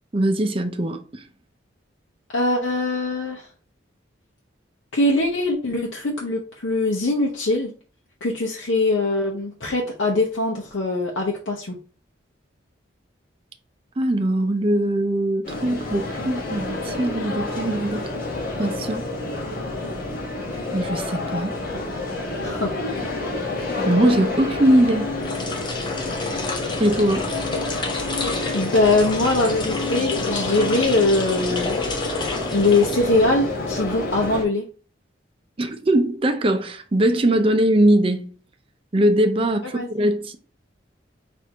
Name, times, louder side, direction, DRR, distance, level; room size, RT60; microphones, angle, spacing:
voice 1, 0.1-1.2 14.0-18.0 18.6-19.0 20.7-21.6 22.7-22.8 23.8-25.1 26.8-27.3 35.6-38.3 38.9-40.4, right 1 dB, 30° right, 0.5 m, -21 dB
voice 2, 2.3-3.5 4.9-7.7 8.2-11.8 22.4-22.7 23.3-23.5 28.5-31.8 32.5-34.7 39.7-39.9, left 2 dB, 75° left, 0.7 m, -22 dB
sound 1, 15.4-34.4, left 2 dB, 50° left, 1.1 m, -28 dB
sound 2, 25.1-33.5, left 3 dB, 25° left, 0.6 m, -31 dB
4.3 x 2.6 x 3.3 m
head